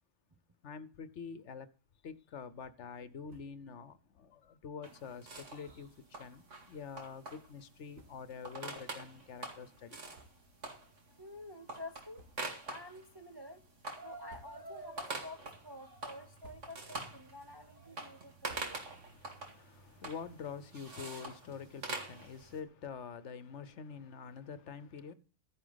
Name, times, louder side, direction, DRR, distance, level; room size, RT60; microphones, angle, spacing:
voice 1, 0.6-1.7 2.0-10.0 18.7-25.1, left 6 dB, 65° left, 15 dB, 1.1 m, -46 dB
sound 1, 3.2-3.7 4.1-4.2 4.5-4.6 5.6-6.0 6.8-6.9 7.6-7.7 7.9-8.5 9.0-9.1 10.1-10.8 11.1-11.3 12.1-12.7 13.1-13.6 14.1-14.9 15.3-15.8 16.2-17.0 17.4-19.2, right 2 dB, 90° right, 1.9 m, -61 dB
sound 2, 4.8-22.6, right 2 dB, 70° right, 2.5 m, -46 dB
voice 2, 11.2-12.2 12.7-13.6 14.0-18.8, left 2 dB, 25° right, 6 dB, 0.6 m, -50 dB
13.5 x 9.8 x 4.0 m, 0.39 s
omnidirectional pair, 1.3 m